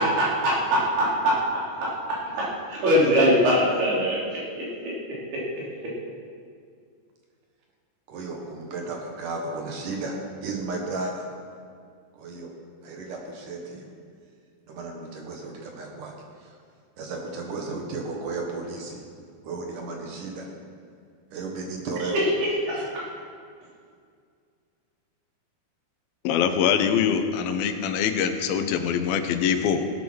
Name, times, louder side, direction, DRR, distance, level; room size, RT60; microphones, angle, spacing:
voice 1, 0.0-1.3 2.7-5.0 22.1-22.2 22.7-22.9, equal, 85° right, -6 dB, 5.6 m, -22 dB
voice 2, 8.1-10.1 10.4-11.3 12.1-12.5 12.8-13.9 14.7-16.1 16.4-16.6 17.0-19.0 19.4-20.5 21.3-22.2 22.7-22.9, right 3 dB, 65° right, 1 dB, 2.7 m, -34 dB
voice 3, 26.2-29.9, left 7 dB, 75° left, 8 dB, 2.6 m, -24 dB
17.5 x 8.5 x 6.2 m, 2.2 s
omnidirectional pair, 4.4 m